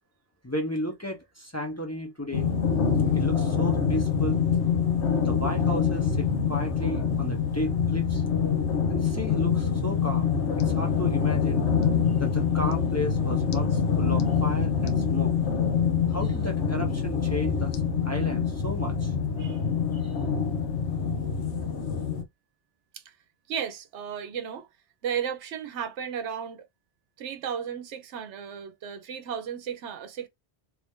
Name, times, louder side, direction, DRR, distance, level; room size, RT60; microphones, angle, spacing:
voice 1, 0.4-2.5 3.1-4.4 5.2-8.2 8.9-11.7 12.2-15.4 16.1-19.1 20.0-20.1, left 1 dB, 15° left, 0.7 m, -34 dB
sound 1, 2.3-22.2, left 6 dB, 80° left, 1.0 m, -25 dB
voice 2, 23.5-24.7 25.0-26.7 27.2-30.3, right 8 dB, 90° right, 1.0 m, -34 dB
2.9 x 2.5 x 3.5 m
omnidirectional pair, 1.1 m